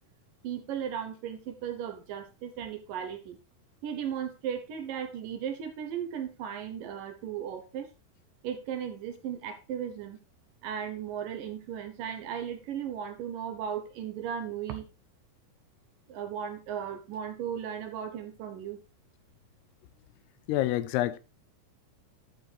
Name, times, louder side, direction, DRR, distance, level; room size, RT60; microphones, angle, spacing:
voice 1, 0.4-3.4 3.8-7.9 8.4-10.2 10.6-14.9 16.1-18.8, right 8 dB, 70° right, 2.4 m, -36 dB
voice 2, 20.5-21.2, left 14 dB, 85° left, 2.7 m, -27 dB
11.0 x 5.3 x 4.5 m
omnidirectional pair, 4.6 m